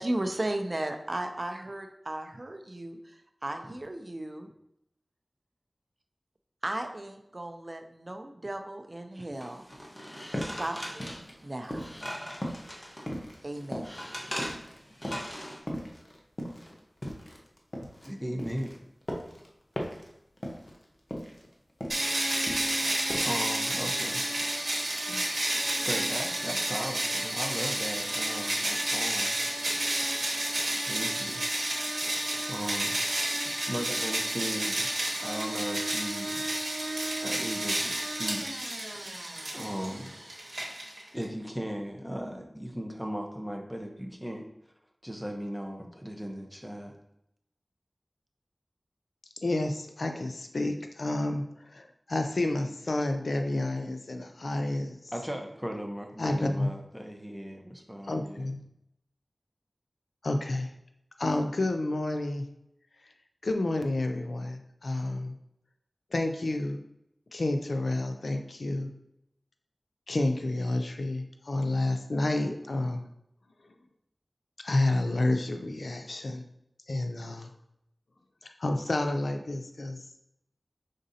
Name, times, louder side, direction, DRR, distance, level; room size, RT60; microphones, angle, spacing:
voice 1, 0.0-3.0 3.4-4.5 6.6-9.6 10.4-11.9 13.4-13.9, right 1 dB, 45° right, 6 dB, 0.5 m, -35 dB
sound 1, 9.4-13.1 13.5-15.6, equal, 15° left, 1.2 m, -40 dB
sound 2, 10.3-12.1 12.4-14.8 15.0-15.4 15.7-18.1 18.4-19.5 19.8-20.1 20.4-20.8 21.1-22.1 22.3-22.9 23.1-23.3, equal, 45° left, 0.9 m, -38 dB
voice 2, 18.0-18.7 22.9-24.6 25.1-25.2 25.8-29.4 30.8-31.5 32.5-33.0 33.7-34.9 35.2-36.5 37.2-39.1 39.5-40.1 41.1-44.4 45.0-46.9 55.1-58.5, equal, 5° right, 2 dB, 0.8 m, -37 dB
sound 3, 21.9-41.2, right 1 dB, 70° right, 1.1 m, -31 dB
voice 3, 49.4-55.0 56.2-56.7 58.1-58.6 60.2-60.7 61.2-62.5 63.4-65.3 66.1-66.8 67.3-68.9 70.1-73.1 74.6-76.4 76.9-77.5 78.4-80.0, left 2 dB, 85° left, 5 dB, 0.4 m, -30 dB
5.1 x 3.8 x 2.7 m, 0.79 s
wide cardioid pair, 50°, 0 cm